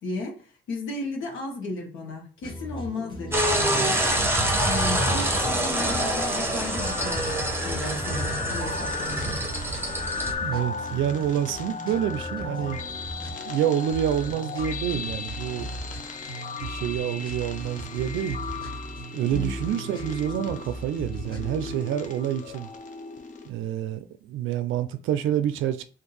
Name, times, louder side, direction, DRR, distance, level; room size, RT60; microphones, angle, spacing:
voice 1, 0.0-4.0 4.6-9.4 19.3-19.6, left 2 dB, 75° left, 1.2 m, -34 dB
sound 1, 2.4-21.8, right 1 dB, 25° left, 1.3 m, -39 dB
sound 2, 3.3-10.3, right 1 dB, 10° right, 0.9 m, -26 dB
sound 3, 5.2-23.5, left 5 dB, 40° left, 0.6 m, -37 dB
voice 2, 10.4-12.8 13.4-15.7 16.6-18.4 19.1-22.7 23.5-25.8, right 10 dB, 80° right, 0.4 m, -27 dB
2.7 x 2.6 x 3.9 m
cardioid pair, 90°, 20 cm